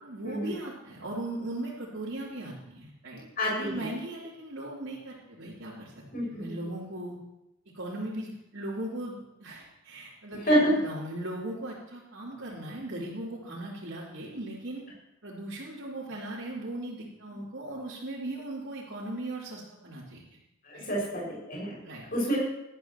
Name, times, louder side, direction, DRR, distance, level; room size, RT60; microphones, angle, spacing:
voice 1, 0.0-5.9 6.2-7.2 7.7-14.8 15.2-20.2 20.7-20.9 21.8-22.1, right 1 dB, 75° right, -9 dB, 3.5 m, -38 dB
voice 2, 3.4-3.9 6.1-6.5 10.4-10.7 20.6-21.8 22.1-22.4, equal, 45° left, -4 dB, 6.3 m, -28 dB
20.0 x 12.5 x 3.1 m, 0.86 s
head